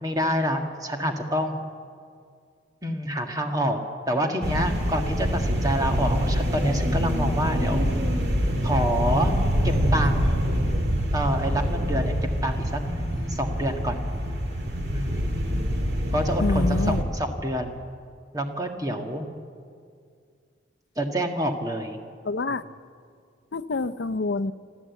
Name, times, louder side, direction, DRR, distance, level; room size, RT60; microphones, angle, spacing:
voice 1, 0.0-1.6 2.8-3.8 4.1-7.9 8.6-9.3 9.6-10.4 11.1-12.1 12.4-12.8 13.3-14.0 14.9-15.3 16.1-17.7 18.3-19.2 21.0-22.0, equal, 20° right, 4 dB, 1.6 m, -27 dB
sound 1, 4.4-17.0, equal, 55° right, 2.4 m, -25 dB
voice 2, 16.4-17.0 22.2-22.6 23.5-24.5, left 3 dB, 65° left, 13 dB, 0.6 m, -26 dB
26.0 x 14.0 x 8.2 m, 2.2 s
head